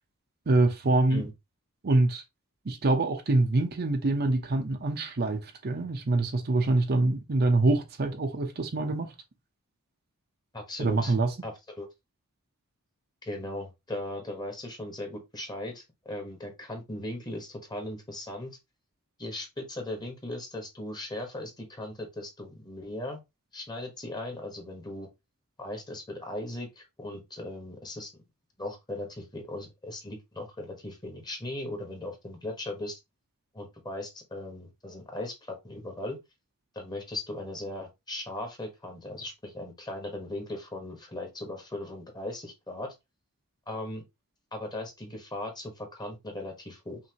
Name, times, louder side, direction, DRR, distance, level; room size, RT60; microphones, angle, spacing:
voice 1, 0.5-1.3 1.8-2.2 2.7-9.1 10.8-11.3, right 2 dB, 45° right, 0.7 m, -25 dB
voice 2, 10.5-11.1 11.4-11.9 13.2-18.6 19.2-23.2 23.5-25.1 25.6-28.1 28.6-33.0 33.5-36.2 36.7-42.9 43.7-44.0 44.5-47.0, left 1 dB, 20° left, 1.2 m, -38 dB
5.7 x 2.7 x 2.9 m
head